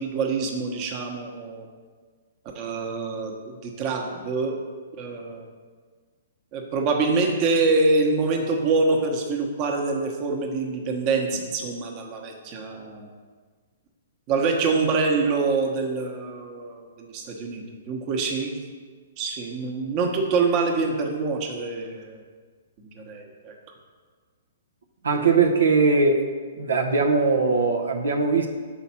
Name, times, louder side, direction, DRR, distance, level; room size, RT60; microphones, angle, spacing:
voice 1, 0.0-1.6 2.5-4.5 5.0-5.5 6.5-13.1 14.3-18.5 19.2-22.2 22.9-23.5, right 3 dB, 35° right, 1 dB, 1.0 m, -25 dB
voice 2, 25.0-26.2 26.6-28.5, right 4 dB, 85° right, 2 dB, 0.7 m, -20 dB
5.7 x 4.2 x 5.7 m, 1.5 s
hypercardioid pair, 140°, 0 cm